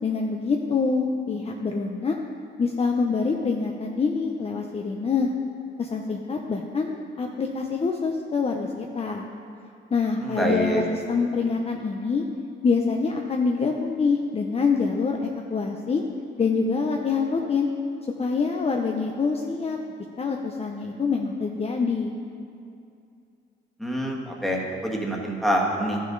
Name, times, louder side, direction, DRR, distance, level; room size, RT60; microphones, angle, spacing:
voice 1, 0.0-2.2 2.6-5.3 5.8-9.3 9.9-12.3 12.6-16.0 16.4-17.7 18.2-19.8 20.2-22.1, left 4 dB, 30° left, 2 dB, 0.7 m, -25 dB
voice 2, 10.2-10.8 23.8-26.0, equal, ahead, -2 dB, 1.6 m, -26 dB
12.5 x 6.4 x 3.9 m, 2.5 s
cardioid pair, 90°, 20 cm